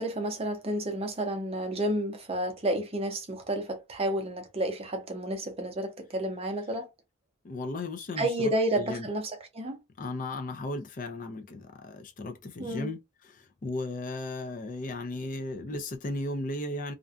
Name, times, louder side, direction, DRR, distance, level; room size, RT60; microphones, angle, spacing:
voice 1, 0.0-6.9 8.2-9.8 12.6-12.9, right 1 dB, 30° right, 0.6 m, -31 dB
voice 2, 7.4-9.1 10.0-16.9, left 2 dB, 40° left, 0.4 m, -36 dB
2.5 x 2.2 x 2.4 m
head